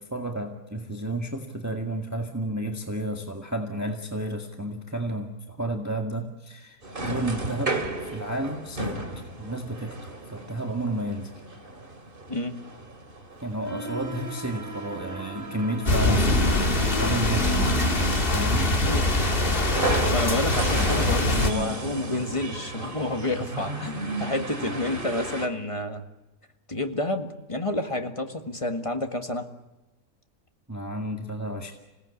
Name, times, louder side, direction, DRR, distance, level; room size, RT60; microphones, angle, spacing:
voice 1, 0.0-7.8 8.0-9.1 9.4-11.3 13.4-16.7 17.0-17.6 18.3-18.7 21.3-21.7 30.7-31.7, right 1 dB, 10° right, 3 dB, 1.9 m, -31 dB
sound 1, 6.8-25.5, right 2 dB, 35° right, 2.6 m, -34 dB
voice 2, 12.3-12.6 18.8-19.1 20.1-26.1 26.7-29.5, left 1 dB, 20° left, 6 dB, 1.8 m, -29 dB
sound 2, 13.6-14.9 16.1-18.3, right 3 dB, 65° right, 4.3 m, -37 dB
sound 3, 15.9-21.5, left 2 dB, 35° left, 2.3 m, -23 dB
27.0 x 18.0 x 8.5 m, 1.1 s
omnidirectional pair, 1.6 m